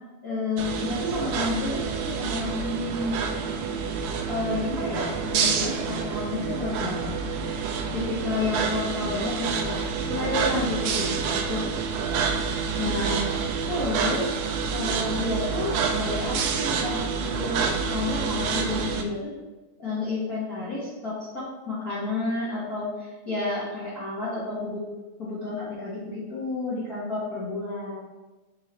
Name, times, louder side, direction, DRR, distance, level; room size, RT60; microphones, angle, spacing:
voice 1, 0.2-3.2 4.3-7.1 7.9-11.6 12.8-13.3 13.7-14.3 14.7-19.3 19.8-24.8 25.2-28.0, left 2 dB, 40° left, -11 dB, 1.5 m, -30 dB
sound 1, 0.6-19.0, right 5 dB, 85° right, 1.4 m, -28 dB
8.6 x 3.7 x 3.1 m, 1.2 s
omnidirectional pair, 3.5 m